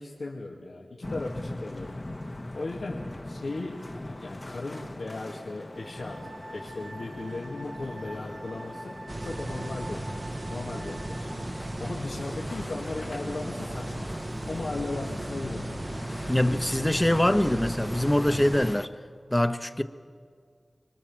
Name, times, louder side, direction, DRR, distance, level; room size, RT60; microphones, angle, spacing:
voice 1, 0.0-2.0 2.5-10.1 10.5-11.3 11.8-14.1 14.5-15.8, left 2 dB, 85° left, 2.4 m, -37 dB
sound 1, 1.0-18.9, left 1 dB, 35° left, 1.4 m, -41 dB
sound 2, 5.7-11.3, right 2 dB, 75° right, 3.8 m, -46 dB
sound 3, 9.1-18.8, right 2 dB, 45° right, 1.1 m, -36 dB
voice 2, 16.3-18.9 19.3-19.8, left 1 dB, 15° left, 1.2 m, -24 dB
26.0 x 23.5 x 7.5 m
wide cardioid pair, 45°, 0 cm